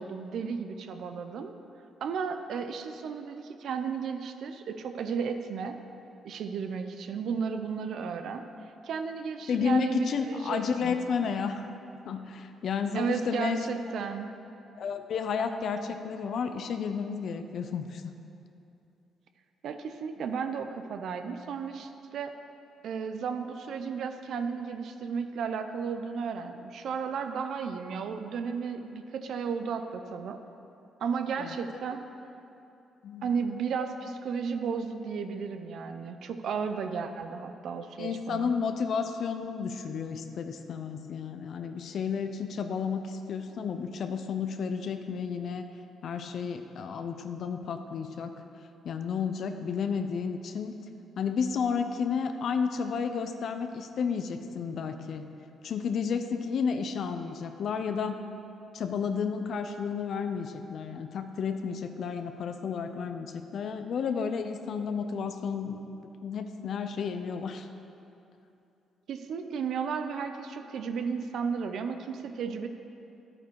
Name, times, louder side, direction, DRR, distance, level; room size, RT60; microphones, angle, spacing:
voice 1, 0.0-1.5 2.0-5.8 6.2-8.4 8.8-11.0 12.9-14.3 19.6-22.3 22.8-30.4 31.0-32.0 33.2-38.5 69.1-72.7, right 6 dB, 70° right, 7 dB, 0.6 m, -34 dB
voice 2, 9.5-11.7 12.1-13.7 14.8-18.1 31.4-31.6 33.0-33.3 38.0-45.7 46.0-48.3 48.8-50.7 51.2-55.2 55.6-58.2 58.7-65.8 66.2-67.7, left 6 dB, 65° left, 7 dB, 0.6 m, -32 dB
11.0 x 8.7 x 4.7 m, 2.8 s
cardioid pair, 90°, 0 cm